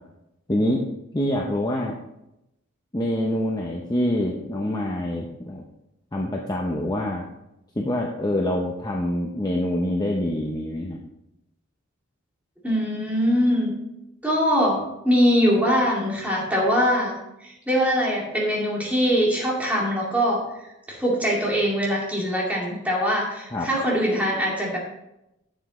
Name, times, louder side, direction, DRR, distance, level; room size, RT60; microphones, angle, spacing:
voice 1, 0.5-0.8 1.1-2.0 2.9-5.6 6.1-7.3 7.8-11.0 23.5-23.7, left 1 dB, 20° left, 0 dB, 0.7 m, -25 dB
voice 2, 12.6-13.7 14.2-24.8, equal, 5° right, -4 dB, 2.4 m, -22 dB
11.0 x 7.1 x 3.2 m, 0.87 s
head